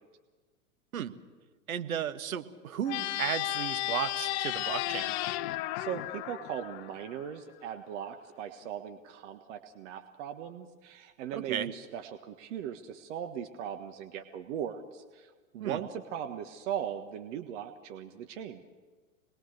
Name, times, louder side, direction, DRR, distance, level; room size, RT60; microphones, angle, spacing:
voice 1, 1.7-5.1 11.3-11.7 15.6-15.8, right 9 dB, 75° right, 10 dB, 1.5 m, -34 dB
sound 1, 2.8-7.3, left 16 dB, 50° left, 0.9 m, -34 dB
voice 2, 5.7-18.6, right 9 dB, 55° right, 7 dB, 1.6 m, -39 dB
27.0 x 21.0 x 6.7 m, 1.4 s
hypercardioid pair, 110°, 42 cm